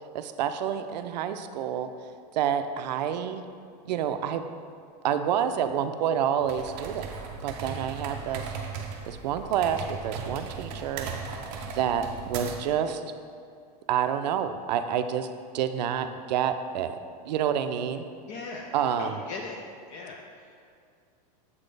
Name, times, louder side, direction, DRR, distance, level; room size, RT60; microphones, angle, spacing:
voice 1, 0.1-1.9 2.3-3.4 3.9-4.4 5.0-7.1 7.4-8.4 9.0-11.4 11.7-13.0 13.9-15.3 15.5-17.0 17.3-18.0 18.7-19.2, right 9 dB, 85° right, 9 dB, 0.4 m, -28 dB
sound 1, 6.4-12.8, right 5 dB, 35° right, 0.5 m, -37 dB
voice 2, 7.6-8.4 18.3-18.7 19.0-19.6 19.9-20.6, left 3 dB, 30° left, 1 dB, 0.3 m, -40 dB
7.2 x 4.2 x 3.3 m, 2.3 s
supercardioid pair, 165°, 21 cm